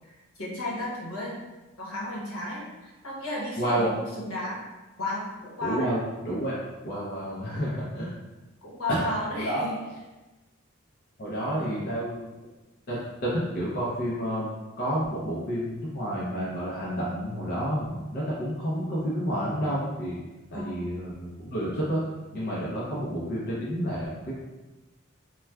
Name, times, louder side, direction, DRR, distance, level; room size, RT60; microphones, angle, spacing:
voice 1, 0.4-1.4 1.8-4.6 5.0-5.9 8.6-9.8 11.6-11.8 20.5-20.9, left 1 dB, 75° left, -5 dB, 1.0 m, -34 dB
voice 2, 3.6-3.9 5.6-6.5 6.8-8.2 8.9-9.1 9.3-9.6 11.2-12.3 12.9-14.5 14.8-20.2 20.5-22.0 22.3-24.3, equal, 45° left, -7 dB, 0.6 m, -30 dB
4.2 x 2.2 x 2.3 m, 1.1 s
head